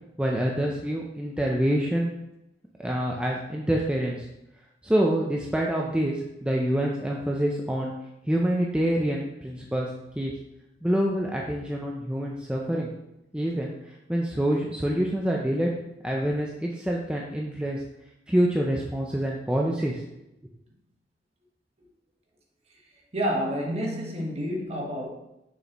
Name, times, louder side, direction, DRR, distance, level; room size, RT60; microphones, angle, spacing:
voice 1, 0.2-2.1 2.8-4.3 4.8-7.9 8.3-9.9 10.2-10.3 10.8-12.9 13.3-15.7 16.0-17.8 18.3-20.0, right 1 dB, 5° right, -2 dB, 0.5 m, -26 dB
voice 2, 23.1-25.1, equal, 35° right, -1 dB, 1.3 m, -29 dB
6.7 x 6.4 x 3.0 m, 0.88 s
head